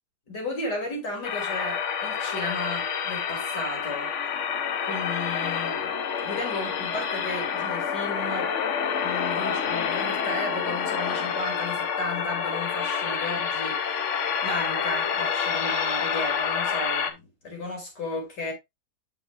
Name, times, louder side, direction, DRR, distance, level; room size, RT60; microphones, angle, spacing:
voice 1, 0.3-4.1 4.4-4.5 4.8-5.9 6.2-8.5 9.0-18.5, left 2 dB, 90° left, 3.7 m, -34 dB
sound 1, 1.2-17.1, left 7 dB, 55° left, 1.0 m, -28 dB
9.0 x 6.5 x 2.5 m
omnidirectional pair, 1.8 m